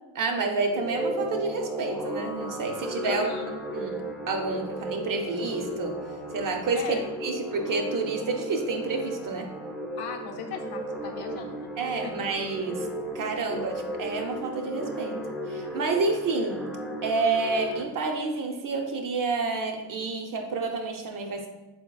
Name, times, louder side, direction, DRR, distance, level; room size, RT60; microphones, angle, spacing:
voice 1, 0.1-3.3 3.7-4.0 4.3-6.0 6.3-9.5 11.8-12.9 13.1-16.7 17.0-21.5, right 3 dB, 50° right, 3 dB, 0.6 m, -29 dB
sound 1, 0.7-17.8, right 1 dB, ahead, 0.3 m, -35 dB
voice 2, 3.0-3.6 6.7-7.1 10.0-12.3, left 6 dB, 60° left, 2 dB, 0.6 m, -38 dB
3.7 x 2.8 x 2.3 m, 1.1 s
supercardioid pair, 60°, 43 cm